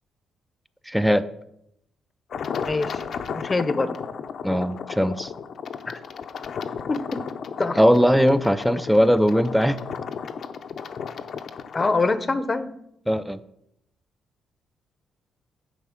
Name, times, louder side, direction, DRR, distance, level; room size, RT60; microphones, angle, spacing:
voice 1, 0.9-1.2 4.4-5.3 7.8-9.8 13.1-13.4, equal, ahead, 11 dB, 0.5 m, -19 dB
sound 1, 2.3-12.1, left 6 dB, 60° left, 0.7 m, -34 dB
voice 2, 2.7-3.0 3.3-4.0 5.9-6.0 6.9-7.2 7.6-7.8 8.7-8.8 11.7-12.9, left 3 dB, 25° left, 12 dB, 0.8 m, -25 dB
10.0 x 4.3 x 7.2 m, 0.78 s
cardioid pair, 90°, 0 cm